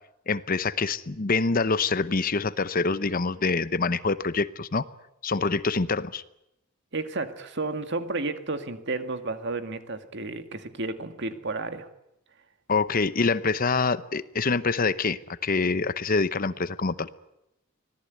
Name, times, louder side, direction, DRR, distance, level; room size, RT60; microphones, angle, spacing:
voice 1, 0.3-4.8 5.2-6.2 12.7-17.1, left 4 dB, 45° left, 15 dB, 0.8 m, -25 dB
voice 2, 6.9-11.9, right 3 dB, 55° right, 8 dB, 2.1 m, -32 dB
25.0 x 18.5 x 9.4 m, 0.84 s
head